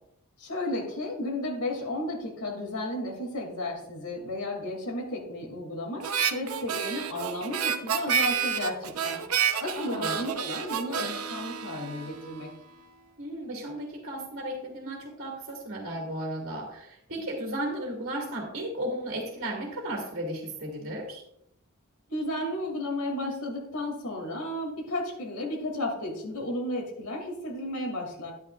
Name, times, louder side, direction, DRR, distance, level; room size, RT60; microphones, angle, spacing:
voice 1, 0.4-9.2 9.6-12.5 22.1-28.3, left 1 dB, 85° left, -1 dB, 2.7 m, -33 dB
Harmonica, 6.0-12.5, right 7 dB, 80° right, 0.9 m, -30 dB
voice 2, 9.8-10.2 13.2-21.2, right 1 dB, 55° right, -1 dB, 2.4 m, -35 dB
12.5 x 10.5 x 2.5 m, 0.75 s
head